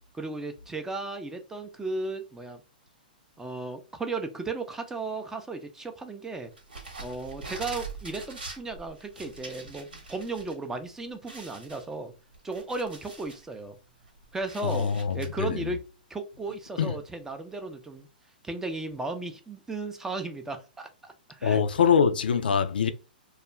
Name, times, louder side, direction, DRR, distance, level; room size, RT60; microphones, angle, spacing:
voice 1, 0.1-2.6 3.4-6.5 7.0-12.1 12.4-13.8 14.3-15.8 16.1-18.1 18.4-21.6, right 3 dB, 10° right, 0.4 m, -35 dB
sound 1, 6.6-10.5 10.9-11.0 11.3-13.4 13.9-15.3, right 3 dB, 80° right, 1.1 m, -43 dB
voice 2, 14.6-15.7 16.8-17.0 21.4-22.9, left 7 dB, 80° left, 0.3 m, -24 dB
2.3 x 2.2 x 3.0 m
hypercardioid pair, 120°, 5 cm